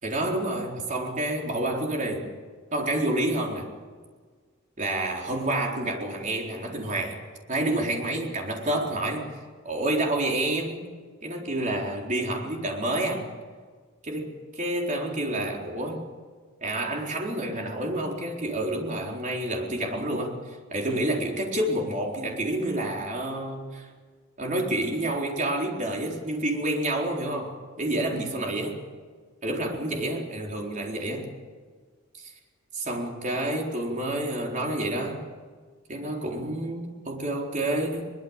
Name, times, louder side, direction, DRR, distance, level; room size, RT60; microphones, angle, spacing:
voice 1, 0.0-2.3 2.7-3.7 4.8-7.2 7.5-9.3 9.6-10.9 11.2-13.2 14.0-16.1 16.6-20.3 20.7-23.9 24.4-27.5 27.8-28.8 29.4-31.3 32.2-32.3 32.7-35.2 35.9-38.1, right 1 dB, 40° right, 0 dB, 4.2 m, -28 dB
22.5 x 22.0 x 7.4 m, 1.6 s
head